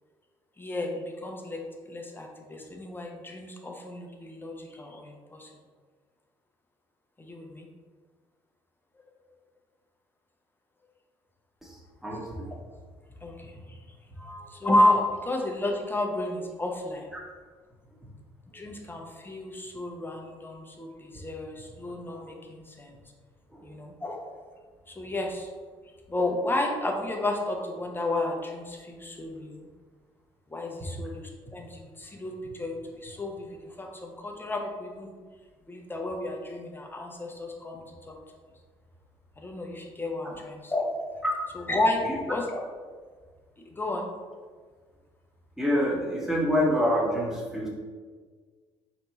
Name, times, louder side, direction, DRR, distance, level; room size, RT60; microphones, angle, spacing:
voice 1, 0.6-5.5 7.2-7.7 13.2-14.0 14.5-17.1 18.5-23.0 23.6-24.4 24.9-25.5 26.1-29.7 30.5-35.1 35.7-38.2 39.4-41.2 41.5-42.6 43.6-44.1, left 1 dB, 15° left, 1 dB, 0.7 m, -31 dB
voice 2, 11.6-12.5 14.1-14.5 18.5-18.7 21.1-21.2 23.5-23.7 40.2-40.3 41.2-41.3 45.6-47.7, equal, 5° right, -3 dB, 1.2 m, -27 dB
3.3 x 3.0 x 4.0 m, 1.5 s
figure-of-eight pair, 50°, 15 cm